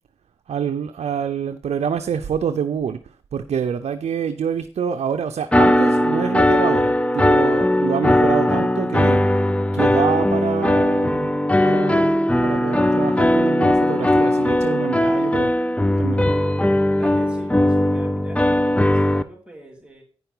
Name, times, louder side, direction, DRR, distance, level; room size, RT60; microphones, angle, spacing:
voice 1, 0.5-3.0 3.3-9.2 9.7-11.3 11.6-15.5 16.0-16.2, right 7 dB, 80° right, 7 dB, 0.6 m, -26 dB
sound 1, 5.5-19.2, left 1 dB, 10° left, 0.7 m, -18 dB
voice 2, 16.9-18.4 18.9-20.0, equal, 10° right, 0 dB, 3.4 m, -42 dB
9.6 x 5.8 x 5.5 m, 0.39 s
cardioid pair, 50°, 11 cm